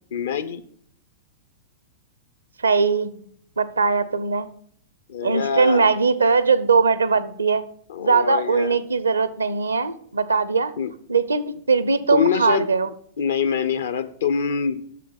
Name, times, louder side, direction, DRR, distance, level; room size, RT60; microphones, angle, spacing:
voice 1, 0.1-0.6 5.1-5.9 7.9-8.8 10.8-10.9 12.1-12.7 13.2-14.8, left 7 dB, 70° left, 12 dB, 0.8 m, -24 dB
voice 2, 2.6-3.2 3.6-4.5 5.2-7.6 8.0-10.7 11.1-12.9, right 4 dB, 85° right, 15 dB, 0.6 m, -20 dB
8.4 x 6.7 x 5.7 m, 0.63 s
figure-of-eight pair, 100°, 0 cm